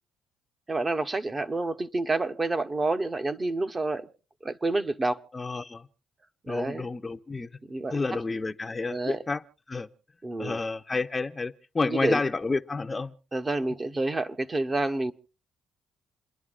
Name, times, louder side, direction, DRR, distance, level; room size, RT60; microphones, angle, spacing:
voice 1, 0.7-4.1 4.4-5.3 6.5-6.9 7.7-8.0 8.9-9.2 10.2-10.6 11.9-12.2 13.3-15.1, right 2 dB, 25° right, 0.8 m, -28 dB
voice 2, 5.3-5.9 6.5-7.5 7.9-9.4 9.7-9.9 10.4-13.1, left 3 dB, 25° left, 0.6 m, -30 dB
28.5 x 10.5 x 2.4 m
cardioid pair, 90°, 0 cm